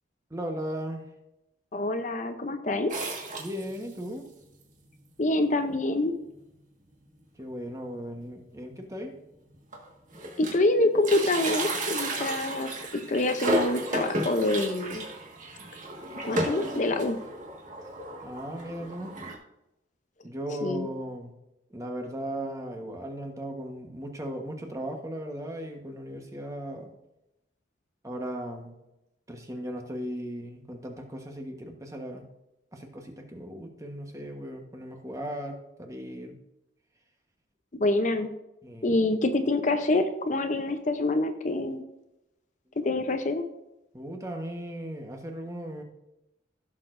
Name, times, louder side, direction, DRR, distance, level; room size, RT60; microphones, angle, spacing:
voice 1, 0.3-1.0 3.4-4.2 7.4-9.1 18.2-19.1 20.2-21.3 21.7-26.9 28.0-28.7 29.3-32.3 32.7-36.4 38.6-39.0 43.9-45.8, equal, 15° right, 3 dB, 1.2 m, -37 dB
voice 2, 1.7-2.9 5.2-6.1 10.4-12.8 13.1-15.1 16.2-17.2 20.6-20.9 37.7-38.3 38.8-41.8 42.8-43.4, left 2 dB, 40° left, 7 dB, 0.7 m, -26 dB
sound 1, 2.9-4.1 4.6-4.7 4.9-5.0 5.9-6.0 6.4-6.6 6.9-7.0 8.3-8.4 9.1-9.2 9.5-10.7 10.9-19.4, right 1 dB, 40° right, 1.7 m, -33 dB
16.0 x 6.7 x 2.6 m, 0.92 s
head